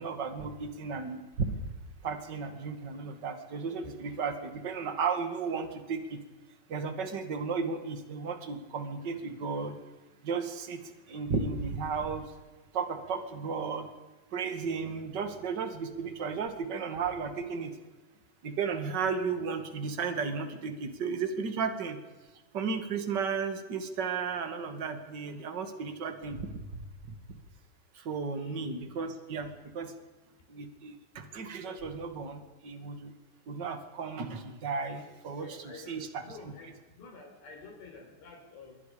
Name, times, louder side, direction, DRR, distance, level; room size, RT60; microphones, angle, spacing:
voice 1, 0.0-1.6 2.0-6.2 6.7-9.8 10.2-12.3 12.7-13.9 14.3-17.7 18.4-22.0 22.5-26.6 27.9-29.9 30.5-33.1 33.5-36.7, right 5 dB, 35° right, 7 dB, 1.9 m, -34 dB
voice 2, 28.4-28.7 35.3-38.8, left 3 dB, 85° left, 2 dB, 6.7 m, -49 dB
27.5 x 22.5 x 5.1 m, 1.2 s
omnidirectional pair, 4.8 m